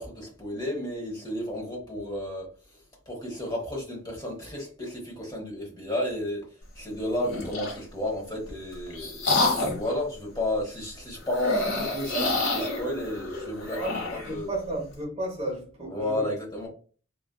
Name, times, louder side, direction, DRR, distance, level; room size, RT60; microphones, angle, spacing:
voice 1, 0.0-14.5 15.8-16.7, left 1 dB, 20° left, 0.9 m, -32 dB
sound 1, 7.2-7.8 8.5-9.9 11.3-14.3, left 2 dB, 75° left, 1.2 m, -28 dB
voice 2, 13.8-16.2, right 1 dB, 30° right, 0.9 m, -33 dB
2.4 x 2.4 x 2.2 m
head